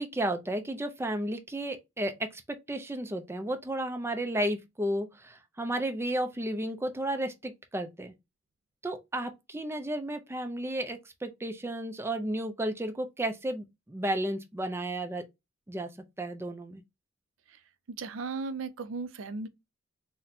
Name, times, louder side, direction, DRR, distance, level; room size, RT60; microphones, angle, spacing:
voice 1, 0.0-8.1 8.8-15.2 15.7-15.9 16.2-16.8, right 1 dB, 10° right, 0.5 m, -33 dB
voice 2, 17.9-19.5, right 4 dB, 75° right, 0.4 m, -36 dB
4.1 x 2.1 x 2.6 m
head